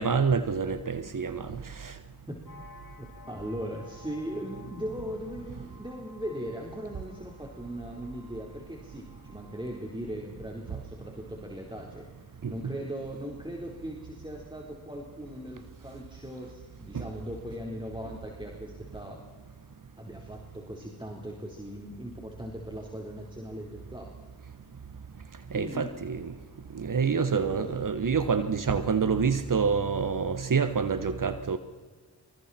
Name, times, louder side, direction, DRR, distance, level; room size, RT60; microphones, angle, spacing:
voice 1, 0.0-2.0 12.4-12.5 16.9-17.0 25.5-26.4 26.7-31.6, right 5 dB, 55° right, 11 dB, 1.2 m, -27 dB
sound 1, 2.4-9.8, left 2 dB, 60° left, 4.8 m, -54 dB
voice 2, 3.0-12.1 12.5-19.2 20.0-24.1 25.5-25.9 27.1-27.8, equal, 10° right, 0 dB, 4.0 m, -39 dB
25.5 x 24.0 x 4.3 m, 1.5 s
cardioid pair, 45°, 38 cm